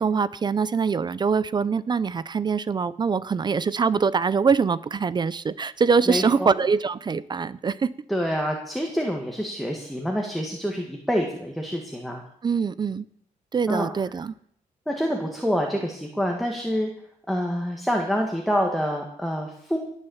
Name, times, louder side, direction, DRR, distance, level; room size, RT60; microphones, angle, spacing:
voice 1, 0.0-7.9 12.4-13.0 13.5-14.3, right 5 dB, 30° right, 18 dB, 0.4 m, -23 dB
voice 2, 6.1-6.5 8.1-12.2 13.7-13.9 14.9-16.9 17.3-19.8, equal, ahead, 1 dB, 1.7 m, -27 dB
18.0 x 6.7 x 7.1 m, 0.68 s
cardioid pair, 125°, 15 cm